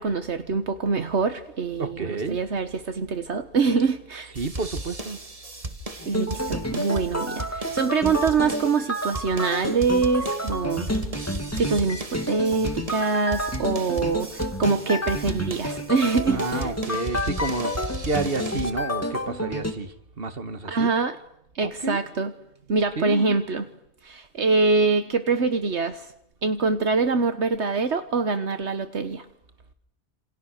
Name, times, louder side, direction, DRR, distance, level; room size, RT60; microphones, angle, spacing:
voice 1, 0.0-4.3 6.0-16.7 20.7-21.2 21.5-22.3 22.7-23.7 24.0-26.1 26.4-29.2, right 4 dB, 75° right, 1.6 m, -24 dB
voice 2, 1.8-2.4 4.4-5.2 7.7-7.8 16.3-20.9 21.6-22.0 23.0-23.4, right 3 dB, 55° right, 2.0 m, -30 dB
sound 1, 4.4-18.7, right 1 dB, 30° right, 1.8 m, -36 dB
sound 2, 6.0-19.7, equal, 15° left, 2.6 m, -30 dB
28.5 x 27.5 x 6.6 m
omnidirectional pair, 1.2 m